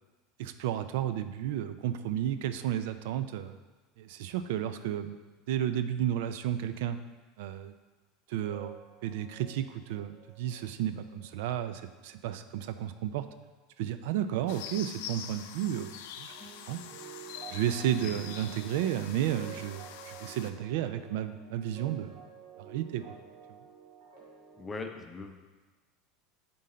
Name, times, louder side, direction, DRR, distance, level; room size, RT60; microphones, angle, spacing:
voice 1, 0.4-3.5 4.0-5.2 5.5-7.0 7.4-7.7 8.3-13.3 13.8-16.3 16.7-16.8 17.5-22.1 22.6-23.2, right 11 dB, 75° right, 11 dB, 0.4 m, -32 dB
sound 1, 8.4-12.7 13.2-13.4 16.3-24.7, right 7 dB, 60° right, 2.2 m, -51 dB
sound 2, 14.5-20.5, left 8 dB, 75° left, 0.5 m, -44 dB
voice 2, 18.0-18.4 24.6-25.5, left 3 dB, 15° left, 4 dB, 0.6 m, -41 dB
7.5 x 3.9 x 4.3 m, 1.3 s
supercardioid pair, 145°, 0 cm